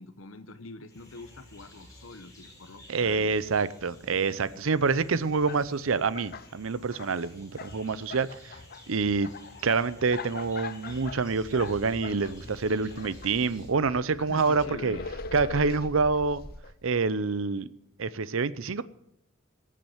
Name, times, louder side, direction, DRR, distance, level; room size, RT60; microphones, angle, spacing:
voice 1, 0.0-3.3 4.0-4.7 14.3-15.1, left 2 dB, 75° left, 9 dB, 0.9 m, -45 dB
sound 1, 0.9-13.7, left 1 dB, 15° left, 5.5 m, -52 dB
voice 2, 2.9-8.5 8.9-9.3 9.6-15.0 15.3-16.4 16.8-17.7 18.0-18.8, right 4 dB, 75° right, 17 dB, 0.6 m, -27 dB
sound 2, 4.9-5.0 5.3-6.5 6.8-7.8 8.1-13.4 13.7-17.0, left 5 dB, 50° left, 0.7 m, -43 dB
sound 3, 10.9-16.5, equal, 20° right, 7.8 m, -46 dB
16.5 x 7.6 x 7.8 m, 0.79 s
head